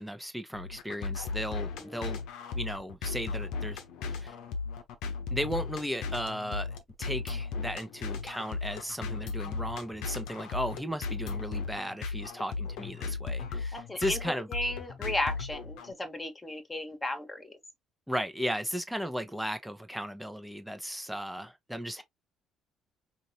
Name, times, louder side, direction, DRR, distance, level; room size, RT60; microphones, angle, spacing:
voice 1, 0.0-2.2 2.5-4.4 5.3-6.7 7.0-14.5 18.1-22.0, equal, 5° right, 1.0 m, -36 dB
sound 1, 0.5-15.9, left 4 dB, 60° left, 1.0 m, -36 dB
voice 2, 13.7-14.2 14.5-17.5, left 1 dB, 20° left, 1.5 m, -35 dB
5.2 x 2.7 x 2.9 m
figure-of-eight pair, 50°, 0 cm